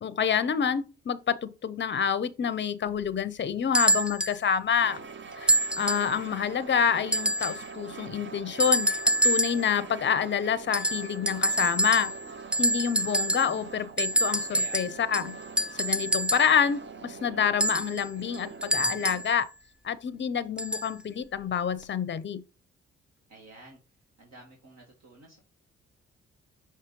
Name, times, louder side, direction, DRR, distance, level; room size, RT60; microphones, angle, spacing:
voice 1, 0.0-5.0 5.4-8.9 9.2-12.1 12.6-15.3 15.7-19.5 19.8-22.4, left 7 dB, 35° left, 0.6 m, -27 dB
sound 1, 3.7-4.4 5.5-6.1 7.1-7.7 8.6-9.7 10.7-12.3 12.5-13.6 14.0-16.6 17.6-19.3 20.6-20.9 21.8-21.9, right 1 dB, 5° right, 0.5 m, -26 dB
sound 2, 4.8-19.2, right 5 dB, 35° right, 0.8 m, -44 dB
voice 2, 23.3-23.8 24.2-25.4, right 2 dB, 55° right, 1.7 m, -49 dB
5.7 x 3.1 x 5.2 m
hypercardioid pair, 45°, 32 cm